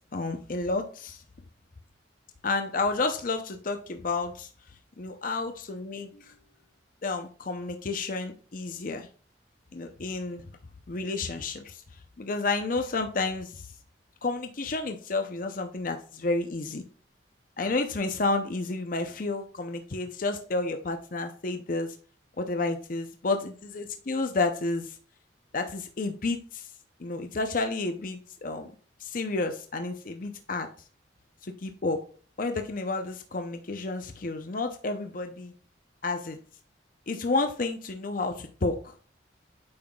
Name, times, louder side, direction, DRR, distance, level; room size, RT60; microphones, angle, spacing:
voice 1, 0.1-1.2 2.4-4.5 5.0-6.3 7.0-9.1 9.7-10.5 10.9-11.8 12.2-13.7 14.2-16.8 17.6-22.0 22.4-25.0 25.5-26.7 27.0-28.7 29.0-30.7 31.4-32.0 32.4-35.5 36.0-36.4 37.1-38.9, left 3 dB, 45° left, 6 dB, 0.6 m, -31 dB
8.6 x 5.6 x 2.3 m, 0.40 s
head